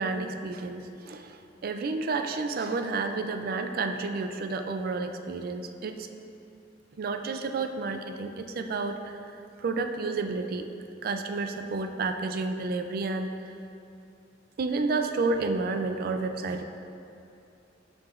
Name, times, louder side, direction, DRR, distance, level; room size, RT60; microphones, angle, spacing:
voice 1, 0.0-6.1 7.0-9.3 9.6-10.7 11.0-13.3 14.6-16.6, right 3 dB, 55° right, 7 dB, 0.4 m, -30 dB
11.5 x 4.7 x 2.5 m, 2.7 s
head